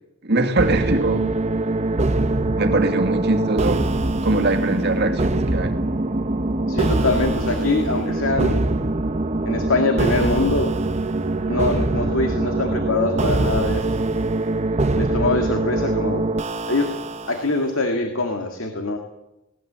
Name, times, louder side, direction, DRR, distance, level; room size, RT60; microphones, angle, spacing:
voice 1, 0.2-1.3 2.6-3.9 4.2-5.8, right 2 dB, 50° right, 6 dB, 2.1 m, -22 dB
sound 1, 0.6-17.5, right 2 dB, 30° right, 0.8 m, -23 dB
voice 2, 6.7-8.7 9.4-10.7 11.5-14.1 14.9-16.3 16.7-17.0 17.3-19.0, left 2 dB, 70° left, 4 dB, 2.2 m, -23 dB
19.5 x 18.5 x 7.6 m, 0.91 s
head